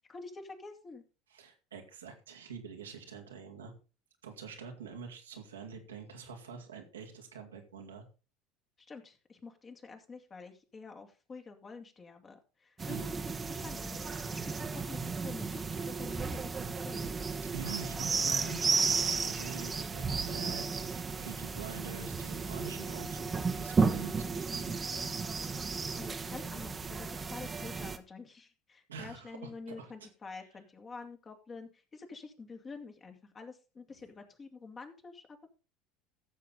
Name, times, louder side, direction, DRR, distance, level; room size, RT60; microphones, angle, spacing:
voice 1, 0.1-1.0 8.8-14.0 14.3-17.1 26.0-35.5, left 4 dB, 30° left, 4 dB, 2.5 m, -48 dB
voice 2, 1.3-3.7 4.2-8.0 12.9-13.1 17.5-24.7 28.9-29.9, right 5 dB, 90° right, 2 dB, 2.3 m, -46 dB
sound 1, 12.8-28.0, right 4 dB, 25° right, 1.3 m, -34 dB
15.0 x 7.0 x 4.0 m, 0.33 s
hypercardioid pair, 75°, 0 cm